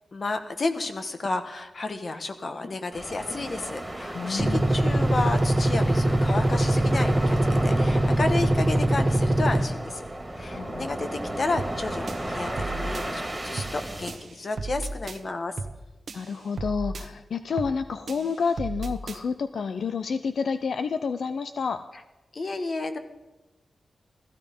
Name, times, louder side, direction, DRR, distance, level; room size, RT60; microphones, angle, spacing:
voice 1, 0.1-7.4 7.6-10.0 10.3-15.5 22.3-23.0, left 3 dB, 50° left, 8 dB, 1.4 m, -31 dB
sound 1, 2.9-14.2, right 1 dB, 5° right, 2.2 m, -34 dB
voice 2, 4.1-4.7 10.5-10.9 16.1-21.8, left 5 dB, 80° left, 10 dB, 0.6 m, -29 dB
sound 2, 4.4-9.6, right 1 dB, 25° right, 1.2 m, -22 dB
sound 3, 11.6-11.8 12.1-13.1 13.6-13.8 14.1-15.2 15.6-15.8 16.1-17.1 17.6-17.8 18.1-19.2, right 3 dB, 65° right, 1.1 m, -35 dB
16.0 x 14.5 x 5.4 m, 1.0 s
wide cardioid pair, 100°, 0 cm